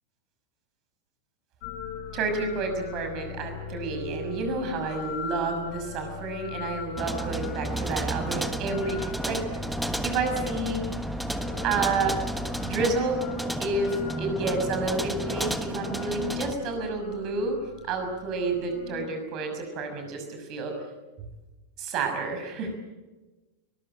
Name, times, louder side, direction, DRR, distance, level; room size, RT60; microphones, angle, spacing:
sound 1, 1.6-19.1, left 7 dB, 45° left, 4.6 m, -40 dB
voice 1, 2.1-9.4 10.0-10.9 11.6-12.2 12.6-13.2 13.6-17.6 17.9-20.7 21.8-22.7, right 3 dB, 40° right, 5 dB, 6.2 m, -30 dB
sound 2, 7.0-16.5, right 1 dB, 5° right, 1.4 m, -32 dB
22.5 x 21.5 x 9.0 m, 1.2 s
figure-of-eight pair, 90°, 0 cm